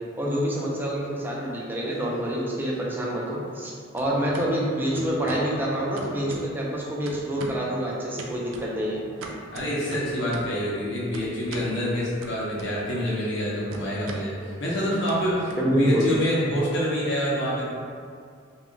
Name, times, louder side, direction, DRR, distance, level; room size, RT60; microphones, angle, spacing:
voice 1, 0.2-9.1 15.6-16.1, equal, 10° right, -4 dB, 0.4 m, -27 dB
sound 1, 1.0-1.8 2.1-3.7 4.0-4.5 5.0-5.5 6.0-6.8 7.1-7.7 8.2-10.6 11.1-11.7 12.2-13.0 13.3-16.2, right 2 dB, 85° right, 0.3 m, -42 dB
voice 2, 9.5-17.7, equal, 65° left, -6 dB, 0.7 m, -27 dB
2.3 x 2.1 x 3.7 m, 2.3 s
head